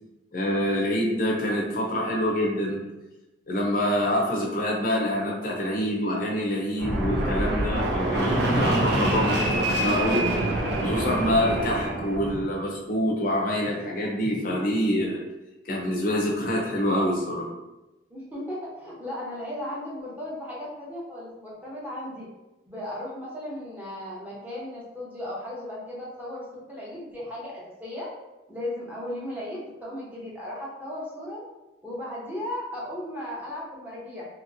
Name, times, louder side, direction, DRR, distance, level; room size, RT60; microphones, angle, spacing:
voice 1, 0.3-2.8 3.5-10.3 10.8-15.2 15.7-17.5, equal, 45° left, -2 dB, 0.5 m, -26 dB
Fixed-wing aircraft airplane, 6.8-12.4, right 1 dB, 70° right, 0.6 m, -25 dB
voice 2, 18.1-22.3 22.7-28.1 28.5-31.4 31.8-34.3, left 1 dB, 10° right, -7 dB, 0.8 m, -36 dB
2.8 x 2.8 x 2.6 m, 1.0 s
head